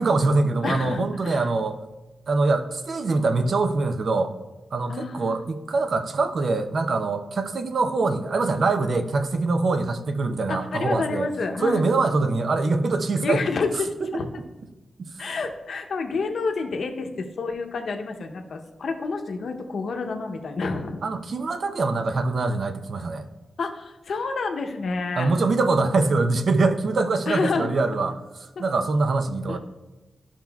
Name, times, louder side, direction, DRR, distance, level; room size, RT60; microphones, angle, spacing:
voice 1, 0.0-1.8 2.3-4.3 4.7-11.3 11.6-13.4 14.0-14.1 21.0-23.2 25.2-28.2 28.6-29.6, right 3 dB, 55° right, 8 dB, 0.5 m, -23 dB
voice 2, 0.6-1.5 4.9-5.4 10.5-11.8 13.2-14.3 15.2-21.0 23.6-25.3 27.3-27.7 29.5-29.6, left 4 dB, 70° left, 4 dB, 0.7 m, -29 dB
12.5 x 5.8 x 2.3 m, 1.1 s
wide cardioid pair, 130°, 0 cm